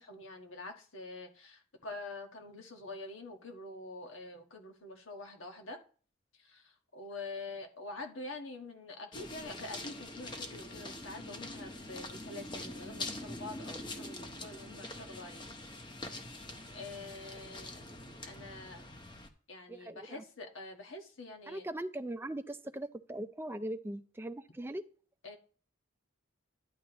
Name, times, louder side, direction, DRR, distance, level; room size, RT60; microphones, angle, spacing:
voice 1, 0.0-5.8 6.4-15.5 16.7-17.8 18.2-18.9 19.5-21.7 25.2-25.4, left 2 dB, 85° left, 1.5 m, -46 dB
sound 1, 9.1-19.3, left 2 dB, 25° left, 0.9 m, -44 dB
voice 2, 19.7-20.2 21.5-24.8, right 1 dB, 10° right, 0.4 m, -40 dB
11.0 x 9.5 x 3.0 m
head